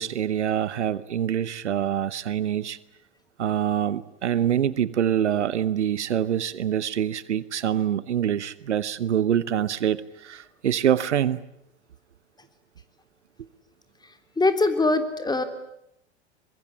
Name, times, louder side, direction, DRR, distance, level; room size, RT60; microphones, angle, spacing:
voice 1, 0.0-2.8 3.4-11.4, right 10 dB, 85° right, 18 dB, 1.0 m, -25 dB
voice 2, 14.4-15.4, left 2 dB, 10° left, 8 dB, 3.4 m, -22 dB
23.5 x 22.0 x 9.9 m, 0.79 s
hypercardioid pair, 85°, 34 cm